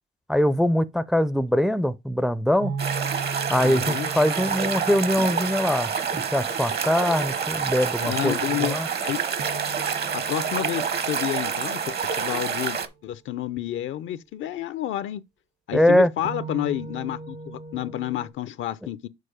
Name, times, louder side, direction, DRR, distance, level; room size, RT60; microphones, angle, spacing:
voice 1, 0.3-2.8 3.5-8.9 15.7-16.1, left 1 dB, ahead, 0.4 m, -22 dB
sound 1, 2.6-6.7 9.4-13.6 16.2-18.3, right 4 dB, 75° right, 2.0 m, -39 dB
sound 2, 2.8-12.9, right 6 dB, 55° right, 1.0 m, -28 dB
voice 2, 3.6-4.1 8.0-9.2 10.1-15.2 15.7-19.1, left 12 dB, 75° left, 0.6 m, -30 dB
6.6 x 4.5 x 5.0 m
cardioid pair, 90°, 20 cm